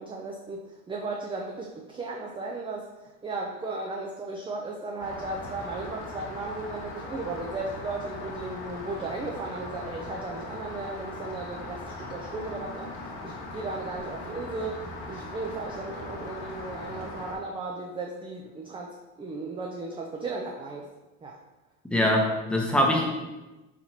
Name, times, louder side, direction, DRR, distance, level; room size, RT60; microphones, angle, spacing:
voice 1, 0.0-20.8 21.2-21.4, right 3 dB, 15° right, -1 dB, 0.4 m, -36 dB
Rain, 5.0-17.4, left 2 dB, 90° left, 1.2 m, -39 dB
voice 2, 21.8-23.1, equal, 5° left, -1 dB, 0.8 m, -23 dB
4.1 x 2.9 x 4.3 m, 1.1 s
cardioid pair, 115°, 32 cm